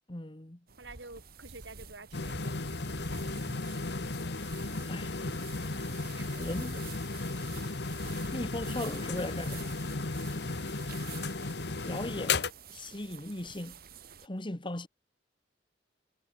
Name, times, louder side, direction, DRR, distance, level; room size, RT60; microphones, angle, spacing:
voice 1, 0.1-0.6 4.8-5.2 6.4-6.8 8.3-9.7 11.8-12.4 12.7-13.8 14.2-14.9, left 1 dB, 30° left, 1.6 m, -38 dB
sound 1, 0.7-14.3, right 5 dB, 55° right, 1.8 m, -48 dB
voice 2, 0.8-2.6 6.2-6.6, right 3 dB, 90° right, 6.3 m, -49 dB
sound 2, 2.1-12.5, left 3 dB, 70° left, 1.3 m, -35 dB
head